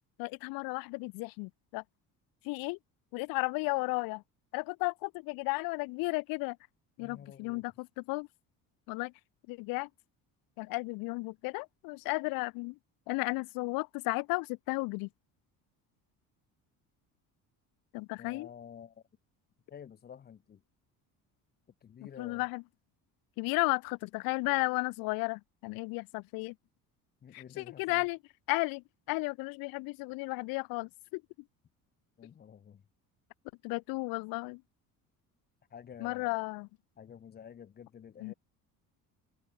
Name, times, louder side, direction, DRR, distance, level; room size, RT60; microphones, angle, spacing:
voice 1, 0.2-1.8 2.4-2.8 3.1-4.2 4.5-6.6 7.0-8.3 8.9-9.1 9.5-9.9 10.6-12.7 13.1-15.1 17.9-18.5 22.2-22.6 23.4-26.5 27.3-28.2 28.5-31.2 33.6-34.6 36.0-36.7 38.2-38.3, left 26 dB, 80° left, 0.6 m, -34 dB
voice 2, 7.0-7.6 18.2-19.0 19.7-20.6 21.8-22.5 27.2-28.1 32.2-32.8 35.7-36.4 37.0-38.3, left 8 dB, 30° left, 1.3 m, -50 dB
cardioid pair, 165°, 34 cm